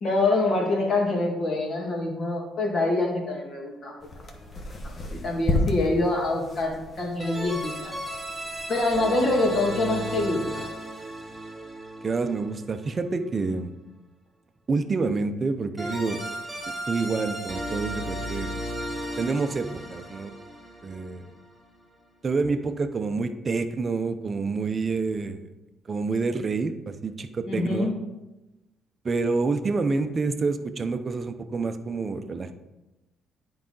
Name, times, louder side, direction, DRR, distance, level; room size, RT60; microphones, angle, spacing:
voice 1, 0.0-3.9 4.8-7.9 8.7-10.7 27.5-27.9, left 2 dB, 50° left, 0 dB, 2.0 m, -25 dB
sound 1, 4.0-9.6, left 2 dB, 30° left, 1.1 m, -33 dB
sound 2, 4.3-4.7 7.2-13.0 15.8-21.7, right 1 dB, ahead, 2.1 m, -35 dB
voice 2, 12.0-13.7 14.7-16.2 16.7-18.6 19.2-20.3 20.8-21.3 22.2-25.5 25.9-27.9 29.0-32.5, right 4 dB, 30° right, 8 dB, 0.6 m, -28 dB
9.8 x 4.8 x 3.9 m, 1.0 s
cardioid pair, 125°, 0 cm